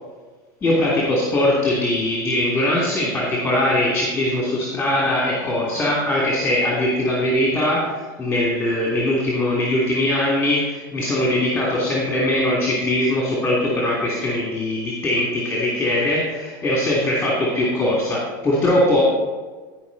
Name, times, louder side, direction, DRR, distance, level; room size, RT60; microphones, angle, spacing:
voice 1, 0.6-19.0, left 1 dB, 15° left, -5 dB, 3.0 m, -21 dB
14.5 x 5.6 x 4.2 m, 1.4 s
supercardioid pair, 120°, 11 cm